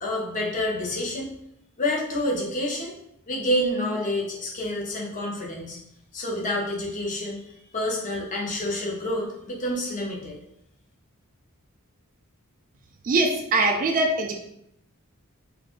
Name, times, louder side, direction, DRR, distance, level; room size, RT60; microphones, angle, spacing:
voice 1, 0.0-1.3 1.8-2.9 3.3-5.8 6.1-10.4, left 1 dB, 35° left, -2 dB, 0.7 m, -28 dB
voice 2, 13.0-14.4, right 2 dB, 40° right, 2 dB, 0.3 m, -22 dB
2.5 x 2.4 x 3.6 m, 0.76 s
head